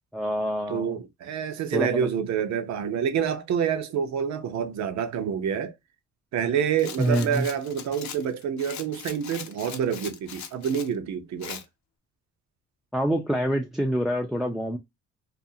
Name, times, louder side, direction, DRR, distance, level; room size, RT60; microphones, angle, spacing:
voice 1, 0.1-1.0 1.7-2.1 7.0-7.5 12.9-14.8, equal, ahead, 0.3 m, -26 dB
voice 2, 0.7-5.7 6.3-11.6, right 8 dB, 65° right, 0.6 m, -27 dB
Rattle, 6.8-10.9 11.4-11.6, left 8 dB, 65° left, 0.6 m, -40 dB
2.5 x 2.4 x 2.6 m
cardioid pair, 90°, 30 cm